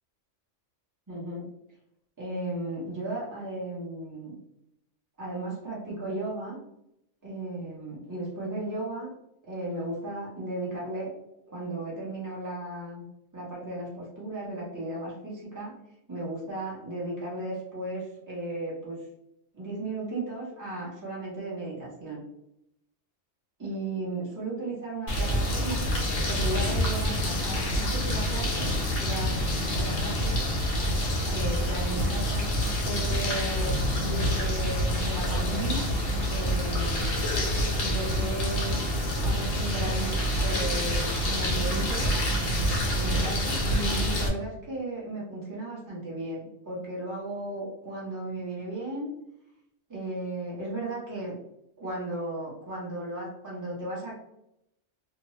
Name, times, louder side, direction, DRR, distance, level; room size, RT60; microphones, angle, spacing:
voice 1, 1.1-1.4 2.2-4.3 5.2-6.6 7.2-9.1 9.5-11.1 11.5-13.0 13.3-15.7 16.1-19.0 19.5-22.2 23.6-25.9 26.3-28.7 29.0-30.3 31.3-32.5 32.8-35.9 36.3-37.2 37.8-38.7 39.2-42.1 42.9-49.1 49.9-51.4 51.8-54.1, right 2 dB, 15° right, -6 dB, 0.9 m, -35 dB
sound 1, 25.1-44.3, equal, 65° left, 1.0 m, -27 dB
2.7 x 2.2 x 3.0 m, 0.80 s
omnidirectional pair, 1.3 m